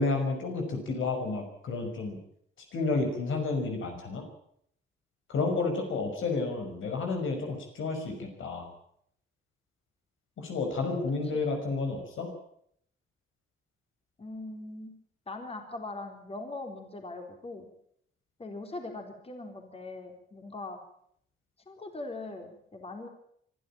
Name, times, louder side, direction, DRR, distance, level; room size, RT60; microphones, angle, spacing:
voice 1, 0.0-2.2 2.7-4.2 5.3-8.7 10.4-12.3, left 3 dB, 75° left, 4 dB, 6.0 m, -31 dB
voice 2, 14.2-14.9 15.3-17.7 18.4-20.8 21.7-23.1, left 2 dB, 30° left, 4 dB, 3.9 m, -41 dB
25.0 x 12.5 x 8.9 m, 0.68 s
cardioid pair, 110°, 20 cm